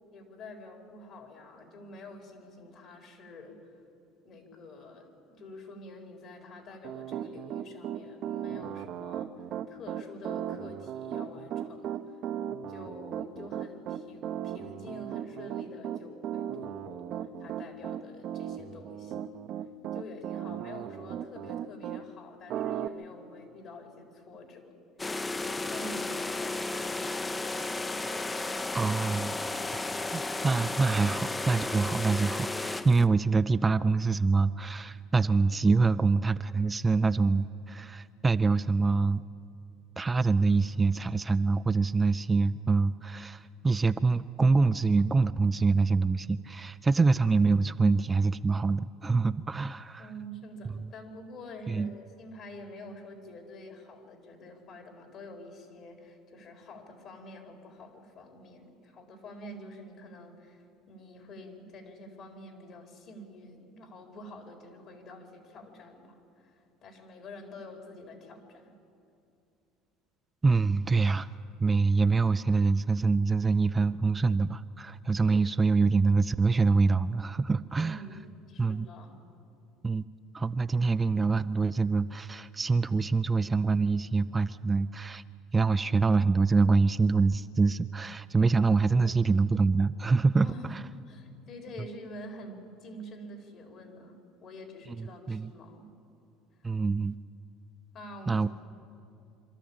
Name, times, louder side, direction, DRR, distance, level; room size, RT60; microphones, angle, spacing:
voice 1, 0.1-3.6 4.2-12.2 12.7-17.0 17.4-19.3 19.9-24.7 25.3-27.0 50.0-68.7 77.8-79.2 88.9-89.2 90.4-90.8 91.1-95.9 96.6-96.7 97.9-98.5, left 1 dB, 55° left, 2 dB, 4.2 m, -47 dB
Piano, 6.8-22.0 22.5-22.9, right 10 dB, 55° right, 0.8 m, -36 dB
sound 1, 25.0-33.1, left 2 dB, 15° left, 0.7 m, -33 dB
voice 2, 28.7-29.4 29.7-39.2 40.0-50.1 51.7-51.9 70.4-71.3 71.6-78.0 78.6-78.9 79.8-80.0 80.3-85.2 85.5-90.8 94.9-95.5 96.6-97.2 98.3-98.5, right 4 dB, 20° right, 12 dB, 0.4 m, -25 dB
25.5 x 13.0 x 8.7 m, 2.5 s
supercardioid pair, 95°, 0 cm